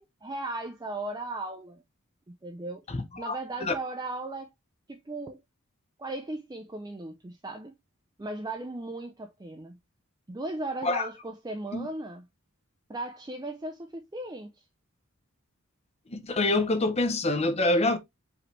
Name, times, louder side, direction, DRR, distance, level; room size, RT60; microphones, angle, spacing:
voice 1, 0.0-1.8 2.3-2.8 3.2-4.5 4.9-5.4 6.0-7.7 8.2-9.8 10.3-12.3 12.9-14.6, right 2 dB, 20° right, 0.4 m, -37 dB
voice 2, 2.9-3.4 3.6-3.7 10.8-11.1 11.7-11.9 16.1-18.0, left 2 dB, 30° left, 0.7 m, -26 dB
4.9 x 3.3 x 3.1 m
head